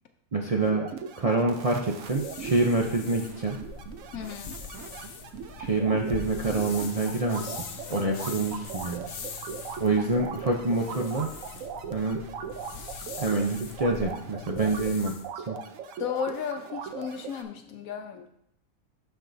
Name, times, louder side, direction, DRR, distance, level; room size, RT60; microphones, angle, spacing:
voice 1, 0.3-0.9 1.2-3.6 5.6-7.6 7.9-9.1 9.8-11.3 11.9-12.2 13.2-15.2 15.5-15.6, right 3 dB, 45° right, -1 dB, 0.5 m, -26 dB
sound 1, 0.6-17.4, right 6 dB, 75° right, 1.0 m, -39 dB
sound 2, 2.0-15.3, left 6 dB, 55° left, 0.7 m, -42 dB
voice 2, 4.1-4.6 16.0-18.3, left 7 dB, 85° left, 5 dB, 1.1 m, -34 dB
12.0 x 4.6 x 2.6 m, 0.70 s
omnidirectional pair, 1.4 m